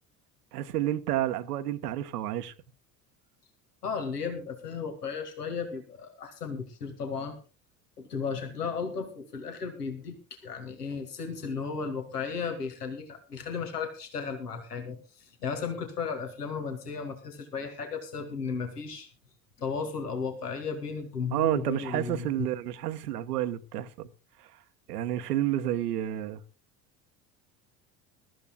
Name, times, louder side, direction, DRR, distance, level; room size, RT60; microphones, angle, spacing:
voice 1, 0.5-2.5 21.3-24.1 24.9-26.4, right 13 dB, 80° right, 1.1 m, -30 dB
voice 2, 3.8-7.4 8.0-19.1 19.6-22.5, left 5 dB, 90° left, 2.0 m, -35 dB
21.5 x 13.0 x 2.3 m
hypercardioid pair, 65°, 46 cm